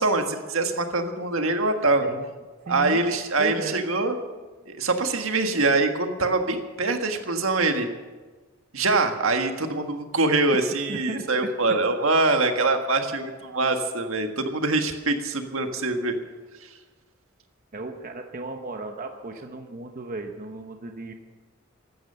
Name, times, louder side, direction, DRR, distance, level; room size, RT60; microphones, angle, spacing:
voice 1, 0.0-2.1 2.7-4.1 4.7-7.9 8.7-16.1 16.6-16.7, right 3 dB, 75° right, 5 dB, 1.6 m, -24 dB
voice 2, 2.7-3.0 3.4-3.8 10.9-11.8 17.7-21.1, right 2 dB, 40° right, 5 dB, 1.0 m, -35 dB
15.0 x 12.5 x 6.9 m, 1.3 s
head